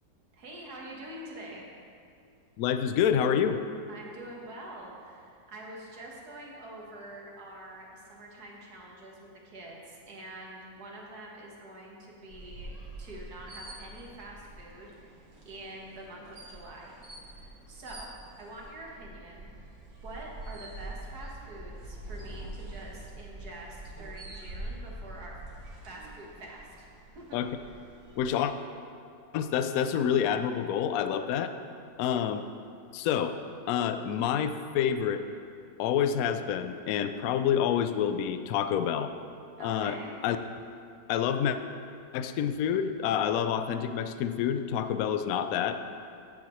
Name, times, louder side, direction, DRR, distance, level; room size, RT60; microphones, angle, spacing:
voice 1, 0.3-1.7 3.9-12.7 13.0-16.9 17.3-19.5 20.0-25.4 25.8-26.9 27.2-27.4 39.6-40.1, right 1 dB, 60° right, -2 dB, 1.9 m, -46 dB
voice 2, 2.6-3.6 27.3-27.5 28.2-28.5 29.3-31.5 32.0-32.4 32.9-33.3 33.7-35.3 35.8-39.1 39.6-40.0 40.2-40.4 41.1-41.6 42.1-45.8, left 8 dB, 70° left, 9 dB, 0.9 m, -28 dB
sound 1, 12.3-28.2, right 2 dB, 90° right, 2.2 m, -45 dB
14.5 x 7.7 x 3.1 m, 2.4 s
omnidirectional pair, 1.9 m